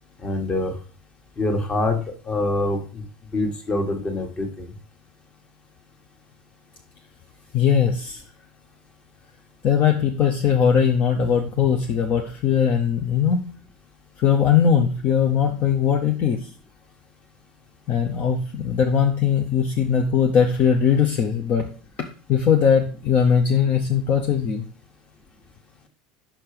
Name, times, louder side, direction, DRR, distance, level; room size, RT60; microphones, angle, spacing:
voice 1, 0.2-0.7 1.4-2.0 2.3-3.0 3.3-4.7, left 2 dB, 30° left, 5 dB, 1.5 m, -25 dB
voice 2, 7.5-8.2 9.6-13.4 14.2-16.5 17.9-21.7 22.3-24.6, left 7 dB, 50° left, 3 dB, 0.8 m, -20 dB
5.9 x 4.4 x 4.9 m, 0.40 s
supercardioid pair, 105°, 3 cm